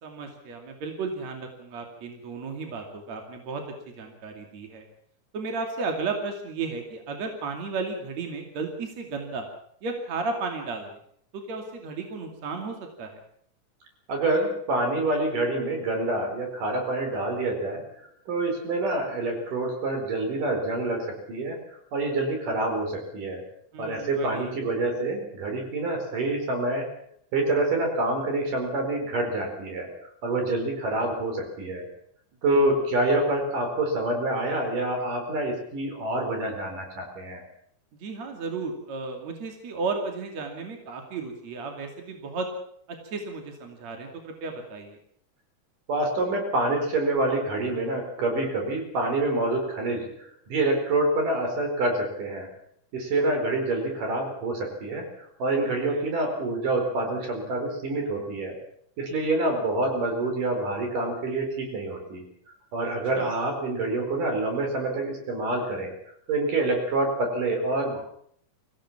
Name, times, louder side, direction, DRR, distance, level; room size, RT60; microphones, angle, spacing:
voice 1, 0.0-3.6 4.0-4.8 5.3-9.5 9.8-11.0 11.3-13.2 23.7-24.5 32.5-32.6 37.9-42.5 42.9-45.0 55.7-56.1 63.2-63.3, right 4 dB, 60° right, 3 dB, 3.8 m, -34 dB
voice 2, 14.1-21.6 21.9-23.4 23.8-26.9 27.3-29.9 30.2-31.9 32.4-37.4 45.9-52.5 52.9-55.1 55.4-58.6 59.0-62.2 62.7-65.9 66.3-68.0, right 2 dB, 85° right, 3 dB, 6.2 m, -27 dB
25.0 x 16.0 x 7.3 m, 0.66 s
omnidirectional pair, 3.6 m